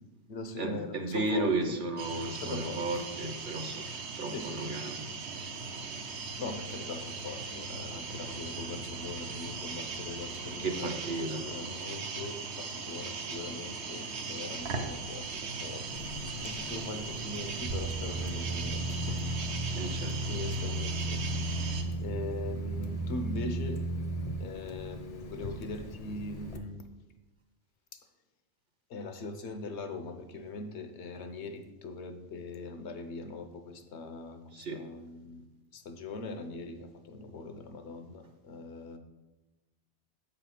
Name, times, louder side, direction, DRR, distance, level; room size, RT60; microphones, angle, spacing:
voice 1, 0.0-1.8 2.4-3.0 4.3-4.7 6.1-19.3 19.6-21.6 22.0-23.8 24.4-26.9 27.9-28.0 28.9-35.4 35.7-39.0, left 3 dB, 80° left, 7 dB, 1.0 m, -41 dB
voice 2, 0.6-3.8 4.1-5.0 10.6-11.4 19.7-20.3 34.5-34.8, right 2 dB, 55° right, 6 dB, 0.9 m, -34 dB
sound 1, 2.0-21.8, right 3 dB, 75° right, 1.1 m, -38 dB
Water tap faucet, 15.9-26.6, left 1 dB, 40° left, 0.6 m, -45 dB
sound 2, 17.6-24.4, right 2 dB, 25° right, 0.6 m, -35 dB
7.5 x 4.1 x 5.7 m, 1.1 s
omnidirectional pair, 1.1 m